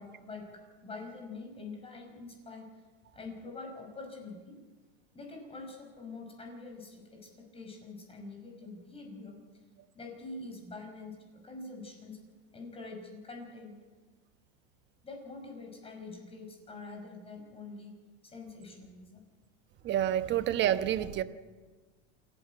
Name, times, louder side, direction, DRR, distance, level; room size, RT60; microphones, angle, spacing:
voice 1, 0.0-2.7 3.1-4.6 5.1-9.4 10.0-12.2 12.5-13.7 15.0-17.9 18.2-19.2 21.0-21.1, left 3 dB, 15° left, 2 dB, 5.4 m, -45 dB
voice 2, 19.8-21.2, right 11 dB, 30° right, 11 dB, 1.1 m, -28 dB
28.0 x 12.0 x 9.0 m, 1.3 s
supercardioid pair, 135°, 35 cm